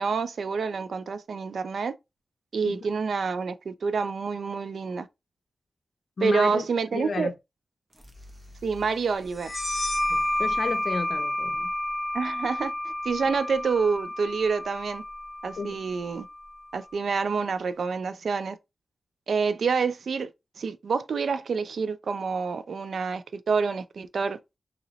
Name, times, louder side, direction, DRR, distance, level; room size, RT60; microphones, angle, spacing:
voice 1, 0.0-1.9 2.5-5.1 6.2-7.3 8.6-9.5 12.1-15.0 15.4-16.3 16.7-18.6 19.3-20.3 20.6-24.4, right 5 dB, 85° right, 0.4 m, -27 dB
voice 2, 6.2-6.7 6.9-7.3 10.1-11.7 15.6-15.8, left 4 dB, 65° left, 0.5 m, -32 dB
sound 1, 7.9-10.9, equal, 20° right, 0.8 m, -47 dB
sound 2, 9.4-16.7, left 1 dB, 10° left, 0.9 m, -30 dB
2.9 x 2.9 x 3.9 m
wide cardioid pair, 140°, 0 cm